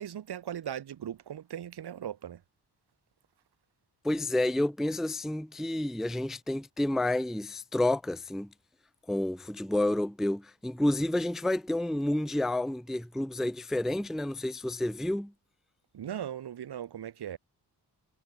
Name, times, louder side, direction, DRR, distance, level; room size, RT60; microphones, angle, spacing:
voice 1, 0.0-2.4 15.9-17.4, right 10 dB, 70° right, 1.6 m, -38 dB
voice 2, 4.0-8.5 9.1-15.3, left 1 dB, ahead, 0.4 m, -30 dB
wide cardioid pair, 160°, 41 cm